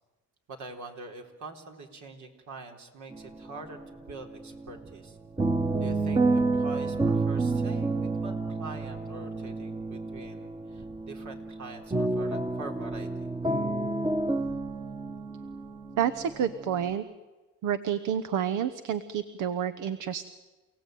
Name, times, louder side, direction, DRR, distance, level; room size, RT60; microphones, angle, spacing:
voice 1, 0.5-5.2 5.8-13.3, right 3 dB, 70° right, 3 dB, 4.1 m, -44 dB
sound 1, 3.1-3.9 4.1-16.9, right 3 dB, 15° right, 1.1 m, -30 dB
voice 2, 16.0-17.0 17.6-20.3, right 9 dB, 90° right, 13 dB, 1.0 m, -29 dB
29.0 x 17.5 x 9.3 m, 1.2 s
cardioid pair, 90°, 30 cm